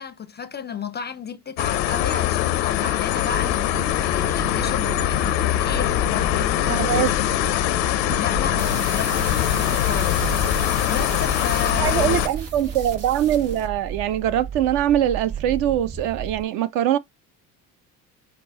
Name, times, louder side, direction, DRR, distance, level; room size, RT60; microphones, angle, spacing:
voice 1, 0.0-7.3 8.2-12.2, left 6 dB, 20° left, 0.4 m, -33 dB
sound 1, 1.6-12.3, left 13 dB, 85° left, 0.6 m, -22 dB
sound 2, 3.2-16.4, right 7 dB, 25° right, 0.8 m, -34 dB
voice 2, 6.6-7.1 8.1-8.2 11.8-17.0, right 11 dB, 60° right, 0.6 m, -22 dB
sound 3, 8.6-13.7, right 5 dB, 85° right, 1.1 m, -36 dB
5.9 x 2.0 x 3.6 m
hypercardioid pair, 65°, 50 cm